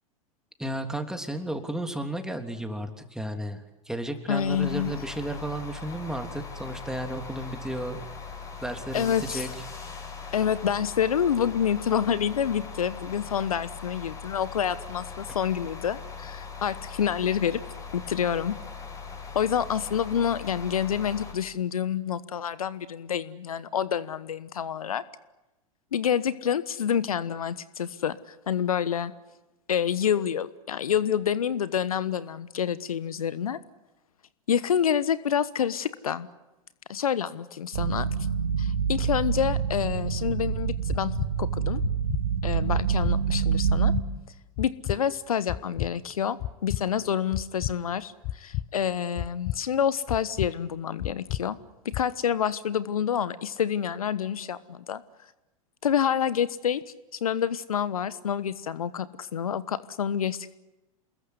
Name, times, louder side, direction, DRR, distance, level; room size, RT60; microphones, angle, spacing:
voice 1, 0.6-8.0 8.6-9.5, right 1 dB, 5° right, 6 dB, 3.3 m, -33 dB
voice 2, 4.3-4.9 8.9-9.5 10.3-17.6 17.9-18.6 19.3-25.0 25.9-29.1 29.7-33.6 34.5-36.3 36.9-38.1 38.6-41.8 42.4-43.9 44.6-51.6 51.9-55.0 55.8-56.8 57.2-60.5, left 8 dB, 75° left, 16 dB, 1.2 m, -28 dB
sound 1, 4.3-21.3, left 5 dB, 15° left, 6.5 m, -40 dB
sound 2, 37.7-44.0, right 7 dB, 75° right, 2.8 m, -26 dB
sound 3, 40.9-41.3 41.8-42.2 42.7-43.1 43.6-44.1 44.6-45.0 45.5-45.9 46.4-46.8 47.3-47.7 48.2-48.7 49.2-49.6 50.1-50.5 51.0-51.4 51.9-52.0, left 15 dB, 45° left, 1.1 m, -31 dB
28.5 x 21.5 x 9.8 m, 0.99 s
hypercardioid pair, 95°, 19 cm